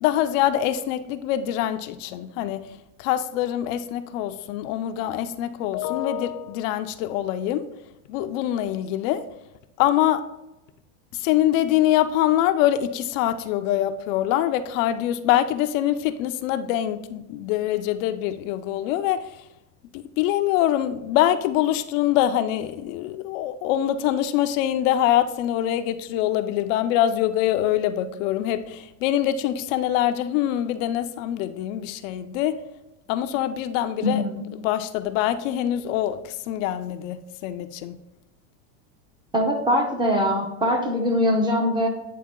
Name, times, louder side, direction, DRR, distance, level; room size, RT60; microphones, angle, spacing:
voice 1, 0.0-2.7 3.0-7.7 8.1-9.2 9.8-10.2 11.1-19.2 19.9-32.6 33.1-34.3 34.6-38.0, left 12 dB, 60° left, 0.5 m, -24 dB
voice 2, 34.0-34.5 39.3-41.9, equal, 10° right, 0.6 m, -22 dB
8.6 x 3.4 x 3.6 m
supercardioid pair, 140°, 44 cm